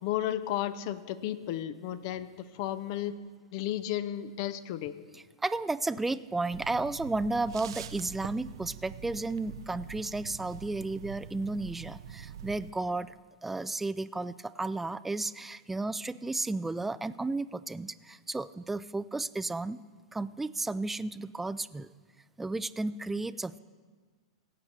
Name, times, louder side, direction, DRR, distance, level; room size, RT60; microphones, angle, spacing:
voice 1, 0.0-2.3 2.5-3.1 3.5-5.0, left 12 dB, 50° left, 14 dB, 0.6 m, -33 dB
voice 2, 5.1-13.1 13.4-19.8 20.1-21.9 22.4-23.6, right 2 dB, 10° right, 15 dB, 0.3 m, -33 dB
sound 1, 6.5-12.7, right 9 dB, 70° right, 0.5 m, -44 dB
17.0 x 8.0 x 4.3 m, 1.5 s
hypercardioid pair, 105°, 3 cm